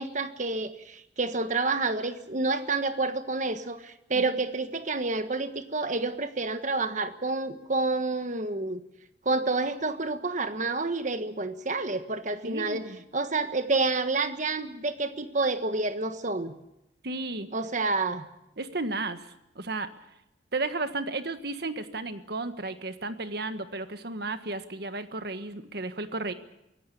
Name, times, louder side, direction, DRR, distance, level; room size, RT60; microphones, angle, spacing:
voice 1, 0.0-8.8 9.2-12.8 13.1-16.5 17.5-18.3, right 3 dB, 45° right, 9 dB, 1.5 m, -29 dB
voice 2, 12.4-13.0 17.0-17.5 18.6-19.9 20.5-26.3, right 3 dB, 60° right, 9 dB, 1.5 m, -33 dB
23.5 x 17.0 x 8.5 m, 0.85 s
head